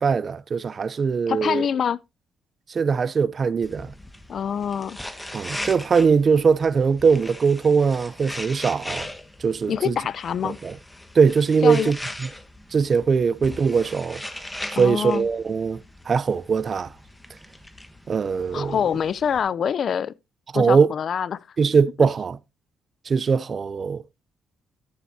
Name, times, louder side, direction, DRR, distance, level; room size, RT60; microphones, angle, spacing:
voice 1, 0.0-1.7 2.7-3.9 5.3-9.1 9.4-10.0 10.4-10.7 11.2-12.0 12.7-14.2 14.7-15.8 16.1-16.9 18.1-18.8 20.5-20.9 21.6-22.4 23.1-24.0, right 5 dB, 45° right, 0.5 m, -21 dB
voice 2, 1.3-2.0 4.3-5.0 9.7-10.6 11.6-11.9 14.8-15.3 18.5-20.1 20.5-21.5, left 8 dB, 55° left, 0.5 m, -25 dB
sound 1, 3.6-19.4, left 1 dB, 10° left, 1.3 m, -39 dB
13.5 x 7.0 x 2.7 m
cardioid pair, 90°, 0 cm